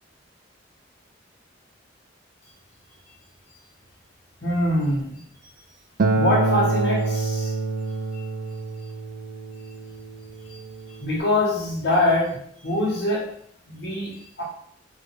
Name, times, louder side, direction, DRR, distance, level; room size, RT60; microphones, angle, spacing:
voice 1, 4.4-5.2 6.1-7.5 9.6-9.7 10.4-10.6 10.9-13.3 13.7-14.4, left 1 dB, 65° left, -6 dB, 1.0 m, -24 dB
Acoustic guitar, 6.0-11.2, right 2 dB, 45° right, 0.3 m, -26 dB
4.8 x 2.5 x 2.9 m, 0.66 s
head